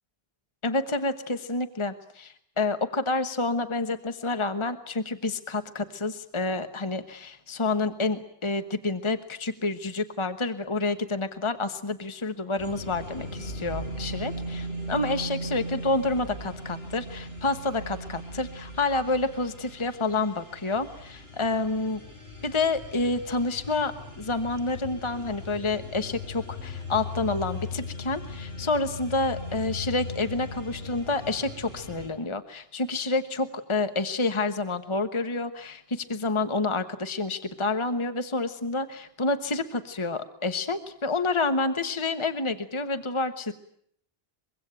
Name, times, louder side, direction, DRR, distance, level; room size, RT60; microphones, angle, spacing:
voice 1, 0.6-22.0 22.4-43.5, left 3 dB, 30° left, 9 dB, 1.3 m, -28 dB
sound 1, 12.6-32.1, left 1 dB, 80° left, 6.2 m, -38 dB
24.5 x 23.0 x 9.0 m, 0.67 s
omnidirectional pair, 1.0 m